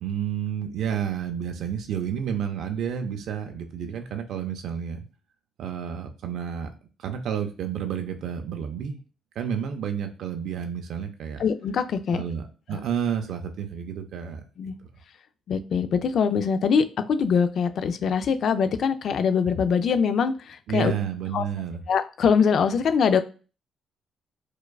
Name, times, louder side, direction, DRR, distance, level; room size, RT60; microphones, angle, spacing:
voice 1, 0.0-5.0 5.6-6.7 7.0-9.0 9.4-11.4 12.1-14.4 20.7-21.8, right 8 dB, 75° right, 5 dB, 0.4 m, -30 dB
voice 2, 11.4-12.2 14.6-14.7 15.5-20.9 21.3-21.4 21.9-23.2, left 6 dB, 65° left, 10 dB, 0.3 m, -23 dB
4.6 x 2.2 x 2.3 m, 0.35 s
cardioid pair, 90°, 0 cm